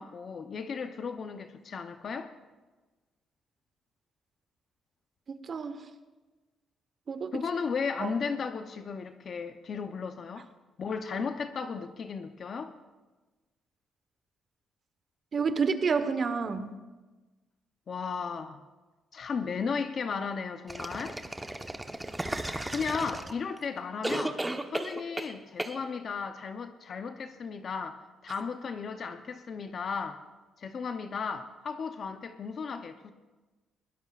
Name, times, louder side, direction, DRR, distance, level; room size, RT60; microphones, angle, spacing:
voice 1, 0.0-2.3 7.3-10.5 10.8-12.7 17.9-18.6 19.1-21.2 22.7-24.4 24.7-30.2 30.6-33.1, left 5 dB, 50° left, 8 dB, 0.7 m, -35 dB
voice 2, 5.3-5.8 7.1-7.4 8.0-8.2 15.3-16.7, right 5 dB, 45° right, 10 dB, 1.1 m, -29 dB
sound 1, 20.7-23.6 24.0-25.3 25.6-25.8, right 1 dB, 10° right, 1.0 m, -34 dB
21.0 x 17.0 x 2.4 m, 1.2 s
cardioid pair, 90°, 0 cm